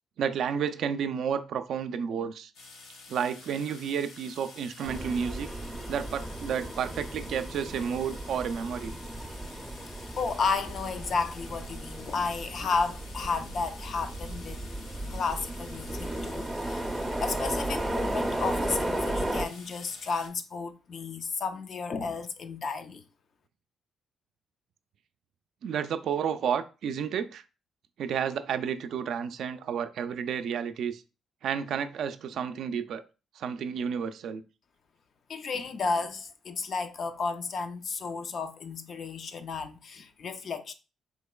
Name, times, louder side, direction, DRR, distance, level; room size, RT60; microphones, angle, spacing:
voice 1, 0.2-2.5 3.1-5.5 5.9-9.0 25.6-27.4 28.0-31.0 31.4-33.0 33.4-34.4, right 7 dB, 70° right, 0.3 m, -31 dB
sound 1, 2.5-20.3, left 3 dB, 85° left, 0.7 m, -49 dB
sound 2, 4.9-19.4, right 1 dB, 10° right, 0.5 m, -35 dB
voice 2, 10.2-14.6 15.1-16.8 17.2-23.0 35.3-40.7, left 4 dB, 55° left, 0.4 m, -33 dB
3.8 x 2.9 x 2.2 m
cardioid pair, 90°, 0 cm